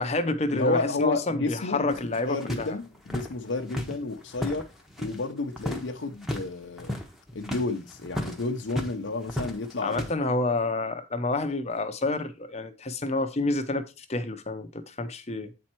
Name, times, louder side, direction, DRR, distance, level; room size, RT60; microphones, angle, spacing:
voice 1, 0.0-2.8 9.8-15.5, left 2 dB, 30° left, 0.7 m, -29 dB
voice 2, 0.5-4.7 5.0-7.0 7.3-10.3, left 3 dB, 70° left, 0.7 m, -31 dB
sound 1, 1.9-5.2 5.5-5.9 6.1-6.5 6.8-9.0 9.2-10.1, left 1 dB, ahead, 1.1 m, -34 dB
8.4 x 4.4 x 4.4 m
head